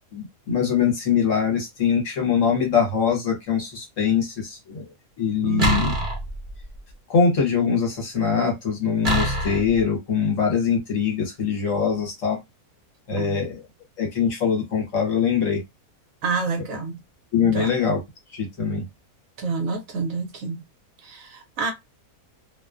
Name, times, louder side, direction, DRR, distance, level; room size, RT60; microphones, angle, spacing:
voice 1, 0.1-4.9 5.2-5.9 7.1-12.4 13.1-13.6 14.0-15.6 17.3-18.0 18.3-18.8, left 6 dB, 55° left, 1.3 m, -23 dB
voice 2, 5.4-6.0 13.2-13.5 16.2-17.0 17.5-17.7 19.4-20.6 21.0-21.7, right 4 dB, 70° right, 1.0 m, -28 dB
sound 1, 5.6-6.8 9.0-9.8, right 1 dB, 40° right, 0.8 m, -25 dB
2.7 x 2.1 x 2.4 m
omnidirectional pair, 1.6 m